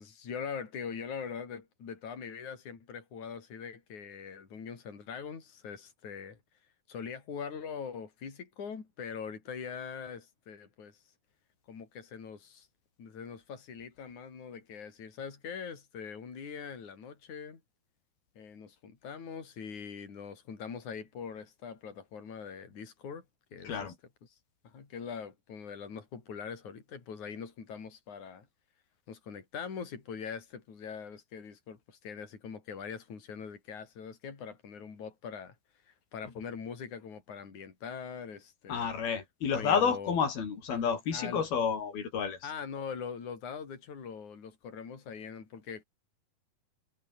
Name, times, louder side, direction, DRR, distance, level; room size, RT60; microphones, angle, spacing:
voice 1, 0.0-6.4 6.9-11.0 11.7-12.7 13.0-17.6 18.4-23.3 23.5-23.9 24.6-28.5 29.1-35.6 35.9-38.9 39.5-40.2 40.7-41.5 42.4-45.8, left 6 dB, 55° left, 5.6 m, -42 dB
voice 2, 38.7-42.4, left 6 dB, 85° left, 5.9 m, -30 dB
omnidirectional pair, 4.2 m